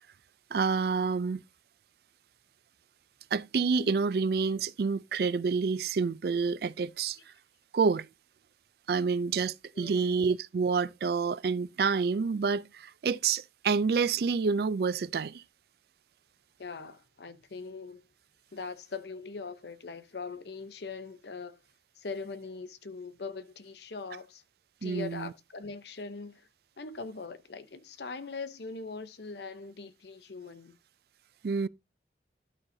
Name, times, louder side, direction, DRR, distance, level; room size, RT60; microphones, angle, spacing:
voice 1, 0.5-1.4 3.3-7.2 7.7-8.1 8.9-15.4 24.8-25.3 31.4-31.7, right 5 dB, 55° right, 0.4 m, -28 dB
voice 2, 9.7-10.2 16.6-18.0 18.5-21.6 22.0-24.4 24.8-26.4 26.8-30.8, left 4 dB, 65° left, 0.7 m, -41 dB
12.0 x 5.5 x 2.7 m
head